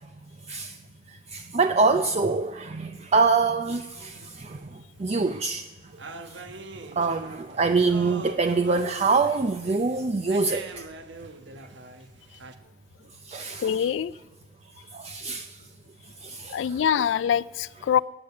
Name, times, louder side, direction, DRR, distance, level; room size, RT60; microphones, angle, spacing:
voice 1, 1.1-5.6 6.3-6.4 6.9-10.9 13.3-13.7 14.9-15.5 16.2-16.7, right 4 dB, 35° right, 8 dB, 0.5 m, -25 dB
sound 1, 4.0-5.3 5.6-5.7 6.0-12.5, right 3 dB, 75° right, 1.1 m, -43 dB
voice 2, 13.6-14.2 16.5-18.0, left 8 dB, 90° left, 20 dB, 0.3 m, -24 dB
12.5 x 8.4 x 9.6 m, 1.3 s
head